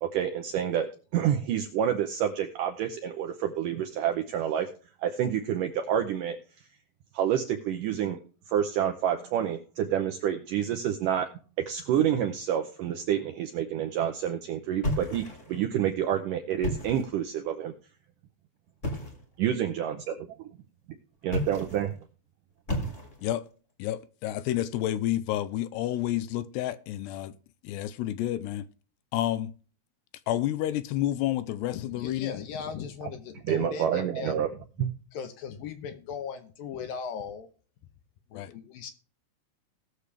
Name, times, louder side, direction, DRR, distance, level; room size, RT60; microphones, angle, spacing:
voice 1, 0.0-4.7 5.0-6.4 7.1-8.2 8.5-11.3 11.7-17.7 19.4-20.5 21.2-22.0 33.0-33.1 33.5-34.5 34.8-34.9, right 9 dB, 80° right, 1.9 m, -28 dB
sound 1, 14.8-15.6 16.5-17.2 18.8-19.3 21.2-21.9 22.7-23.4, left 1 dB, 25° left, 1.8 m, -33 dB
voice 2, 23.8-27.3 27.6-28.7 29.1-29.5 30.3-32.4 38.3-38.5, left 13 dB, 85° left, 2.7 m, -30 dB
voice 3, 31.7-34.4 35.1-37.5 38.3-38.9, left 6 dB, 70° left, 2.4 m, -38 dB
19.0 x 6.8 x 3.3 m
omnidirectional pair, 4.8 m